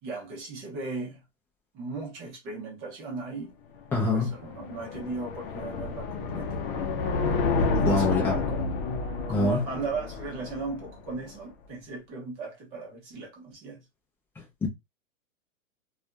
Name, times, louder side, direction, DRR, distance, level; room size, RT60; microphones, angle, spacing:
voice 1, 0.0-1.2 1.7-3.5 4.1-6.6 7.7-8.7 9.3-13.8, right 4 dB, 30° right, 0.9 m, -36 dB
sound 1, 3.8-11.2, left 4 dB, 45° left, 0.6 m, -30 dB
voice 2, 3.9-4.3 7.6-8.4 9.3-9.6 14.6-14.7, left 3 dB, 5° left, 0.4 m, -25 dB
2.6 x 2.4 x 2.2 m
hypercardioid pair, 140°, 41 cm